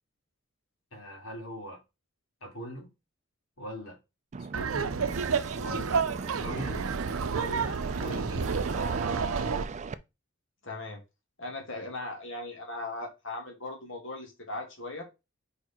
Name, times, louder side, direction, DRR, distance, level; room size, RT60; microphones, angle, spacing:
voice 1, 0.9-1.8 2.4-2.9 3.6-4.0 4.5-4.9 5.6-6.0 6.4-6.9 7.3-8.6, equal, 90° left, 3.2 m, -40 dB
sound 1, 4.3-9.9, right 5 dB, 35° right, 0.4 m, -38 dB
Laughter, 4.5-9.6, right 5 dB, 85° right, 0.6 m, -30 dB
voice 2, 10.6-11.0 11.4-15.0, left 2 dB, 65° left, 2.2 m, -38 dB
4.9 x 4.7 x 4.4 m
head